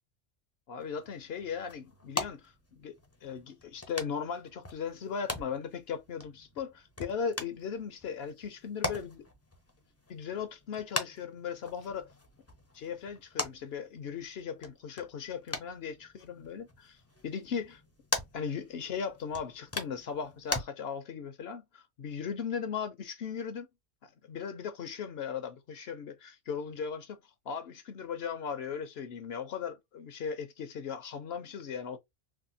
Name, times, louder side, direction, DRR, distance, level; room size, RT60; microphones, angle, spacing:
voice 1, 0.7-2.5 2.8-2.9 3.2-9.2 10.1-12.1 12.7-17.0 17.2-17.8 18.3-23.7 24.2-27.2 27.5-32.0, left 6 dB, 65° left, 0.8 m, -37 dB
sound 1, 0.8-20.6, left 2 dB, 20° left, 0.4 m, -41 dB
3.4 x 2.3 x 2.6 m
omnidirectional pair, 1.2 m